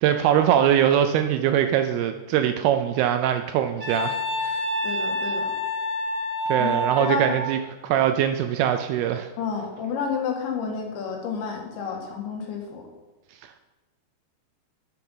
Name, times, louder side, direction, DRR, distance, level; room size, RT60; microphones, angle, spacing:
voice 1, 0.0-4.6 6.5-7.6 7.8-9.3, right 10 dB, 80° right, 7 dB, 2.3 m, -22 dB
Wind instrument woodwind instrument, 3.8-7.4, equal, 35° right, 4.1 m, -27 dB
voice 2, 4.8-5.5 6.5-6.7 7.0-7.4 9.4-12.8, left 5 dB, 85° left, 1 dB, 4.0 m, -30 dB
12.0 x 6.8 x 5.5 m, 1.2 s
omnidirectional pair, 5.0 m